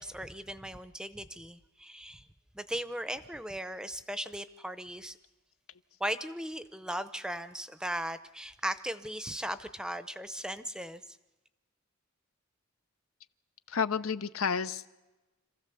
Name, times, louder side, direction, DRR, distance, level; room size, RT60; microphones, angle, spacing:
voice 1, 0.0-2.2 2.5-5.2 6.0-11.2, right 1 dB, 5° right, 11 dB, 0.6 m, -37 dB
voice 2, 13.7-14.9, left 6 dB, 90° left, 12 dB, 0.7 m, -30 dB
26.5 x 15.0 x 6.9 m, 1.1 s
head